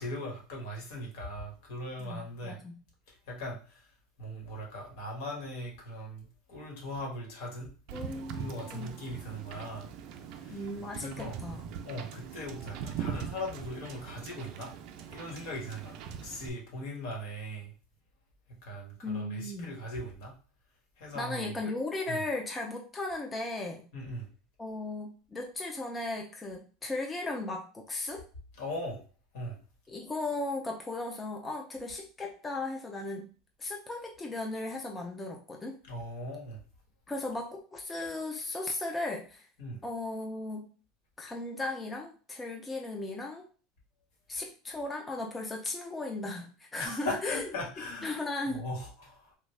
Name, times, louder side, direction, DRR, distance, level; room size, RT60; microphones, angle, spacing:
voice 1, 0.0-2.6 3.1-3.9 4.2-7.7 8.3-9.9 10.4-10.7 11.0-11.4 11.8-14.7 15.1-17.7 18.6-20.3 21.0-21.5 22.1-22.2 23.9-24.3 28.6-29.0 29.3-29.6 35.8-36.6 39.6-39.8 46.8-49.3, left 1 dB, 75° left, -1 dB, 1.4 m, -39 dB
voice 2, 2.0-2.7 7.9-8.9 10.5-11.6 19.0-19.7 21.1-23.8 24.6-28.2 29.9-33.3 33.6-35.8 37.1-39.5 39.8-40.6 41.2-43.5 44.3-47.4 48.0-48.6, left 2 dB, 15° left, 1 dB, 0.5 m, -36 dB
Wind / Boat Water vehicle, 7.9-16.5, right 7 dB, 60° right, 0.5 m, -41 dB
3.4 x 2.3 x 3.2 m, 0.38 s
supercardioid pair, 130°, 0 cm